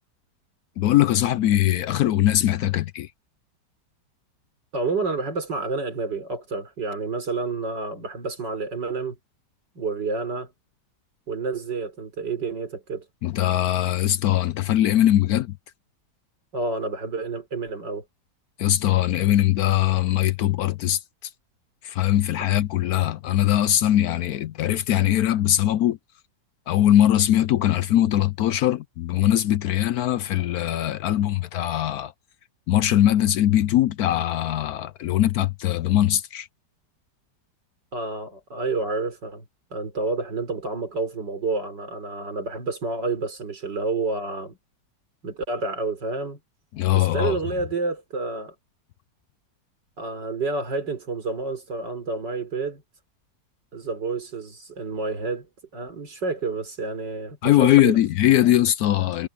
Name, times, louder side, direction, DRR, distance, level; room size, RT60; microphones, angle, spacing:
voice 1, 0.8-3.1 13.2-15.5 18.6-21.0 21.8-26.0 26.7-32.1 32.7-36.5 46.7-47.4 57.4-59.3, left 13 dB, 70° left, 1.0 m, -21 dB
voice 2, 4.7-9.2 9.7-10.5 11.3-13.1 16.5-18.0 22.5-22.6 37.9-39.4 39.7-44.6 45.2-46.4 46.9-48.5 50.0-52.8 53.7-55.5 55.7-58.0, right 3 dB, 80° right, 4.8 m, -29 dB
omnidirectional pair, 1.9 m